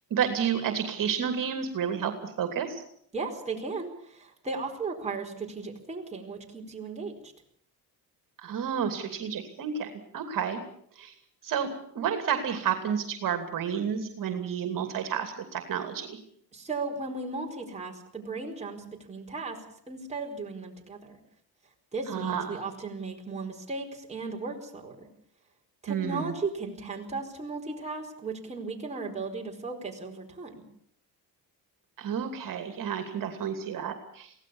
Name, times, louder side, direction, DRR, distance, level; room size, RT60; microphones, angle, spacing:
voice 1, 0.1-2.8 8.4-10.6 10.9-11.1 11.4-11.7 11.9-16.2 22.1-22.6 25.9-26.3 32.0-34.3, right 8 dB, 55° right, 6 dB, 2.8 m, -30 dB
voice 2, 3.1-7.3 16.5-19.6 19.9-21.2 21.9-25.1 25.8-30.5, right 3 dB, 15° right, 1 dB, 4.7 m, -36 dB
23.5 x 17.0 x 7.2 m, 0.66 s
cardioid pair, 125°, 38 cm